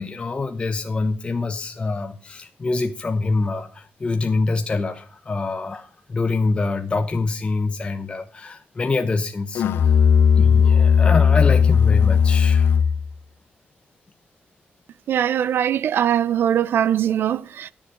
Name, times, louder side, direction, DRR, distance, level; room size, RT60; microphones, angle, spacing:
voice 1, 0.0-10.0 10.4-12.7, left 3 dB, 30° left, 0.8 m, -25 dB
Musical instrument, 9.5-13.1, left 7 dB, 75° left, 0.6 m, -16 dB
voice 2, 15.1-17.7, right 10 dB, 75° right, 0.5 m, -21 dB
12.5 x 7.1 x 5.0 m
wide cardioid pair, 130°, 4 cm